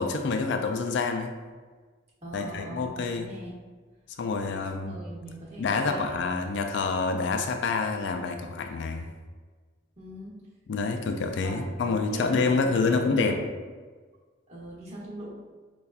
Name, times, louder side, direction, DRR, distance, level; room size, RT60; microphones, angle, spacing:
voice 1, 0.0-1.3 2.3-3.3 4.2-5.0 5.6-9.1 10.7-13.4, left 4 dB, 60° left, 5 dB, 0.3 m, -27 dB
voice 2, 2.2-3.6 4.3-6.2 10.0-10.4 11.4-13.5 14.5-15.3, right 1 dB, 35° right, -7 dB, 1.0 m, -40 dB
5.3 x 2.3 x 2.3 m, 1.4 s
head